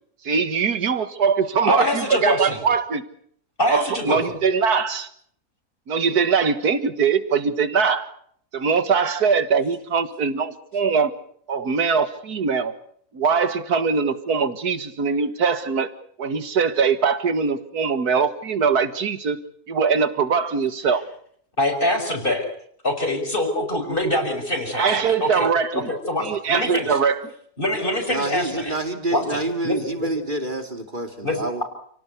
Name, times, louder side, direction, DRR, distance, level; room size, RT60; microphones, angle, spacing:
voice 1, 0.2-3.1 3.7-5.1 5.9-8.1 8.5-11.1 11.5-12.7 13.1-15.9 16.2-19.4 19.7-21.0 24.7-25.9 26.2-27.3, right 5 dB, 80° right, 2.1 m, -22 dB
voice 2, 1.7-2.6 3.6-4.2 21.6-22.4 22.8-25.5 25.7-25.8 26.1-27.0 27.6-28.7 29.1-29.7 31.2-31.4, left 1 dB, 35° left, 6.5 m, -24 dB
voice 3, 28.1-31.6, right 2 dB, 30° right, 3.0 m, -27 dB
30.0 x 18.0 x 8.3 m
omnidirectional pair, 1.6 m